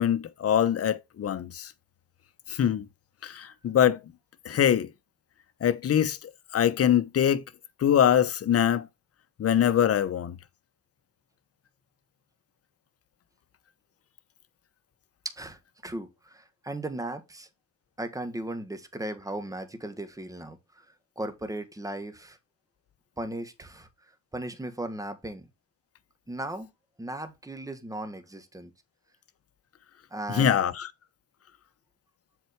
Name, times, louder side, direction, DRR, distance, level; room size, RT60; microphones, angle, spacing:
voice 1, 0.0-1.7 2.5-2.9 3.2-4.0 4.4-4.9 5.6-7.4 7.8-8.9 9.4-10.4 30.3-30.9, left 9 dB, 50° left, 1.0 m, -23 dB
voice 2, 15.3-17.5 18.0-20.9 21.2-22.4 23.2-23.9 24.3-25.5 26.3-26.7 27.0-28.7 30.1-30.5, right 1 dB, 10° right, 1.7 m, -37 dB
7.7 x 4.5 x 4.7 m
cardioid pair, 90°, 30 cm